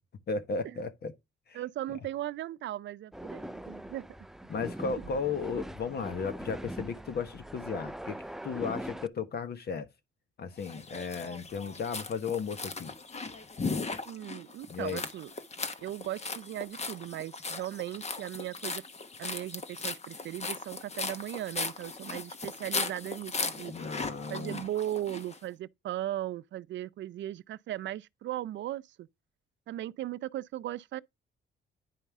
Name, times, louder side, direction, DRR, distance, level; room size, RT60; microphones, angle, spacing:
voice 1, 0.3-1.1 1.5-1.6 4.5-8.2 8.4-9.9 10.4-12.9 14.7-15.0 23.7-24.6, left 5 dB, 55° left, 1.4 m, -35 dB
voice 2, 1.5-4.0 14.1-15.3 15.8-18.8 19.2-23.7 24.3-29.1 29.7-31.0, right 13 dB, 70° right, 0.5 m, -37 dB
sound 1, 3.1-9.1, right 1 dB, ahead, 0.4 m, -41 dB
sound 2, 10.6-25.4, left 4 dB, 35° left, 1.2 m, -38 dB
10.0 x 5.4 x 3.6 m
cardioid pair, 90°, 20 cm